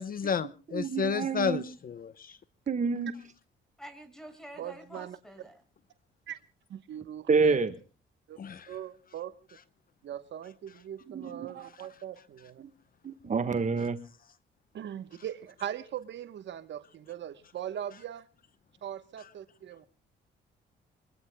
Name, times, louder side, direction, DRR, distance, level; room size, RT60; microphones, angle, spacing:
voice 1, 0.0-2.4 8.4-8.7, left 6 dB, 45° left, 0.8 m, -32 dB
voice 2, 0.7-1.6 2.7-3.1 7.3-7.7 11.1-11.5 12.6-12.7 13.0-14.0, right 5 dB, 40° right, 1.4 m, -28 dB
voice 3, 3.8-5.6, right 1 dB, ahead, 5.9 m, -47 dB
voice 4, 4.6-5.2 6.3-6.4 6.7-7.6 8.3-8.4 8.7-9.3 10.0-12.6 14.7-18.2 18.8-19.9, right 10 dB, 65° right, 1.1 m, -40 dB
24.5 x 23.5 x 2.2 m
cardioid pair, 90°, 20 cm